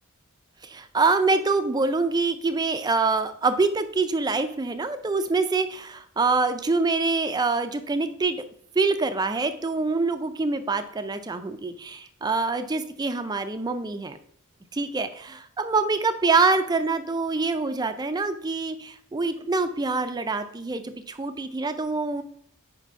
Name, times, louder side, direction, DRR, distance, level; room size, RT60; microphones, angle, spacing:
voice 1, 0.6-8.4 8.8-14.2 14.7-22.2, right 3 dB, 20° right, 9 dB, 0.4 m, -25 dB
5.3 x 4.1 x 4.6 m, 0.65 s
head